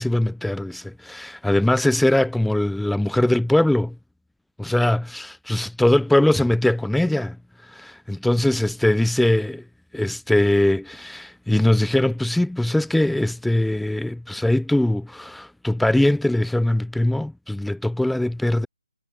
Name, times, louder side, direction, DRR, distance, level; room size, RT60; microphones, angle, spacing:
voice 1, 0.0-4.0 4.6-7.4 7.7-9.6 9.9-18.7, left 1 dB, ahead, 2.4 m, -21 dB
hypercardioid pair, 165°, 3 cm